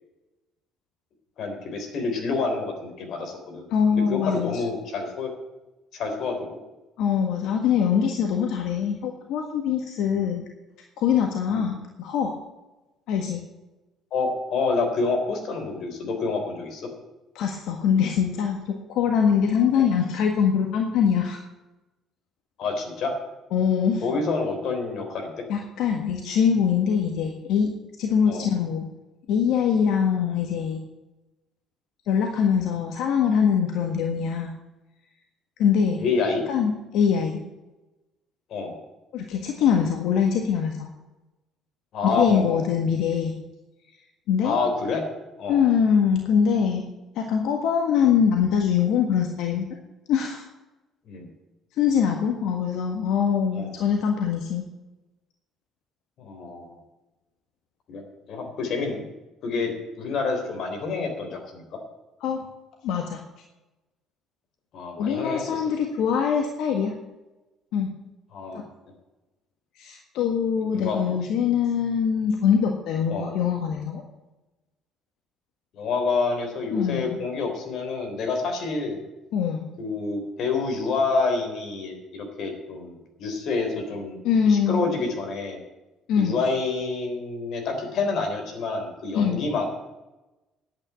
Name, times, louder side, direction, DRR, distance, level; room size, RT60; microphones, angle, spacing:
voice 1, 1.4-5.3 5.9-6.6 10.1-10.3 11.5-11.6 14.1-16.9 19.7-19.9 22.6-23.1 24.0-25.3 28.3-28.5 36.0-36.4 38.5-38.8 41.9-42.7 44.4-45.0 45.4-45.6 51.1-51.3 53.5-53.7 56.2-56.8 57.9-58.0 58.3-59.0 59.4-61.6 64.7-65.7 68.3-68.6 70.8-71.0 73.1-73.4 75.7-79.0 79.8-84.2 84.5-85.6 86.2-89.7, left 4 dB, 55° left, 4 dB, 3.5 m, -28 dB
voice 2, 3.7-4.6 7.0-10.4 11.0-12.3 13.1-13.4 17.4-21.4 23.5-24.0 25.5-27.7 28.0-28.9 29.3-30.8 32.1-34.5 35.6-36.1 36.5-37.4 39.1-40.9 42.0-43.3 44.3-44.6 45.5-46.9 47.2-49.7 50.1-50.4 51.8-54.6 62.2-62.4 62.8-63.2 65.0-66.9 67.7-67.9 68.5-68.6 69.8-74.0 76.7-77.2 79.3-79.7 84.2-84.9 86.1-86.4 89.1-89.5, left 7 dB, 80° left, 2 dB, 1.6 m, -23 dB
10.5 x 8.8 x 9.0 m, 1.0 s
cardioid pair, 160°, 0 cm